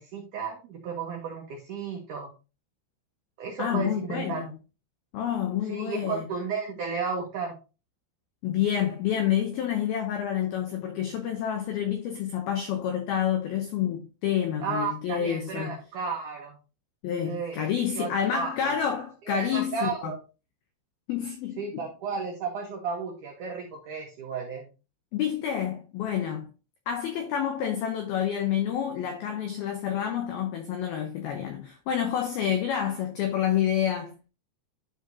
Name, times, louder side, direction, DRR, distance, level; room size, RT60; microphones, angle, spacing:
voice 1, 0.0-2.3 3.4-4.4 5.7-7.6 14.6-16.6 17.3-17.7 17.9-18.7 19.3-20.2 21.6-24.7, right 5 dB, 85° right, 1.8 m, -33 dB
voice 2, 3.6-4.5 5.1-6.3 8.4-15.8 17.0-20.1 21.1-21.9 25.1-26.5 26.9-34.1, left 9 dB, 85° left, 2.1 m, -28 dB
12.0 x 4.8 x 2.8 m
omnidirectional pair, 5.6 m